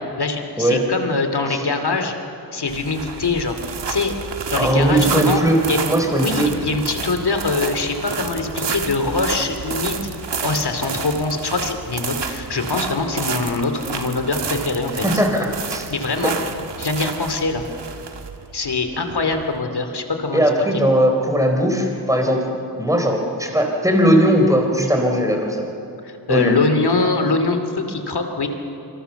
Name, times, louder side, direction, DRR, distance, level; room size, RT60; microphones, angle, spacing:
voice 1, 0.0-2.1 2.5-3.6 3.9-4.1 4.5-5.4 5.7-5.8 6.1-10.1 10.4-15.2 15.9-16.3 16.8-17.6 18.5-20.8 26.0-28.5, left 3 dB, 65° left, 6 dB, 2.7 m, -23 dB
sound 1, 2.7-19.6, right 5 dB, 75° right, 1.6 m, -30 dB
voice 2, 4.5-5.6 5.9-6.5 15.0-15.9 20.3-22.4 22.8-25.6 26.3-26.6, equal, 10° right, 3 dB, 3.8 m, -18 dB
27.0 x 25.5 x 7.0 m, 2.8 s
wide cardioid pair, 105°, 42 cm